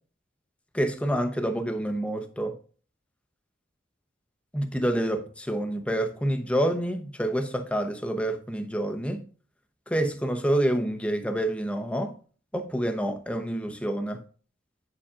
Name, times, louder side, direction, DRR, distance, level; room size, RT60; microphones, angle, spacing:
voice 1, 0.7-2.6 4.5-9.2 9.9-12.1 12.5-14.2, right 1 dB, 5° left, 0.8 m, -27 dB
8.8 x 7.1 x 2.5 m
head